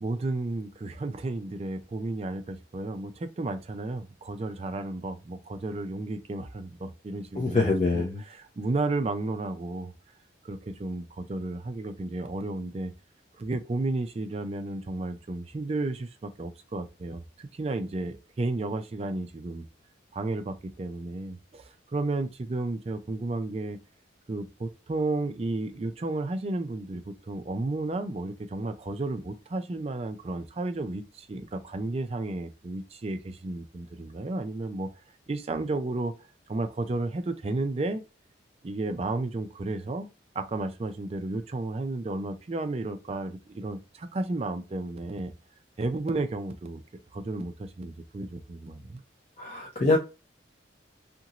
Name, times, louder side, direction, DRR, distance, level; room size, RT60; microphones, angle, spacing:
voice 1, 0.0-9.9 10.4-12.9 13.3-19.6 20.1-23.8 24.3-34.9 35.3-36.1 36.5-38.0 38.6-40.1 40.4-45.3 45.8-46.8 47.1-49.0, right 2 dB, 30° right, 0.4 m, -33 dB
voice 2, 7.4-8.2 49.4-50.0, left 3 dB, 35° left, 0.5 m, -24 dB
2.9 x 2.6 x 2.8 m
head